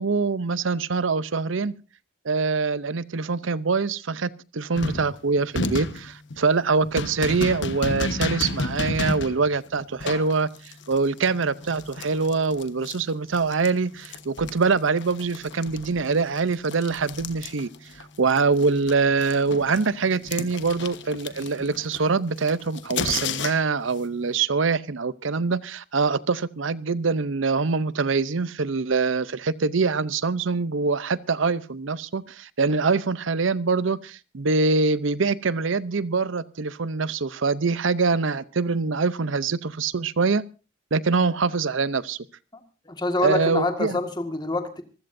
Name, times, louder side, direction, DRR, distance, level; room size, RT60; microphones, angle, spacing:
voice 1, 0.0-1.7 2.2-17.7 18.0-40.4 40.9-42.2 43.2-44.0, right 4 dB, 75° right, 17 dB, 0.7 m, -24 dB
sound 1, 4.8-13.7 14.0-18.0 18.3-23.8, left 3 dB, 60° left, 1.2 m, -32 dB
voice 2, 42.5-44.8, left 2 dB, 20° left, 6 dB, 1.8 m, -27 dB
26.0 x 15.5 x 2.6 m, 0.32 s
head